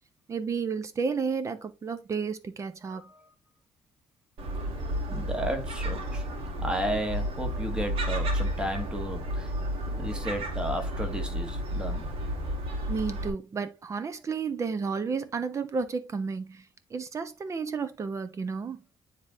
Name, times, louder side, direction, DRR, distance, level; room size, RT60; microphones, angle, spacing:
voice 1, 0.3-3.1 12.9-16.6 16.9-18.8, right 5 dB, 35° right, 0.8 m, -32 dB
voice 2, 2.9-3.3 5.1-6.2 6.6-9.5 9.9-12.1, equal, 10° right, 1.3 m, -33 dB
Gull seagull, 4.4-13.3, equal, 85° right, 2.0 m, -32 dB
9.5 x 3.7 x 2.7 m
cardioid pair, 130°, 9 cm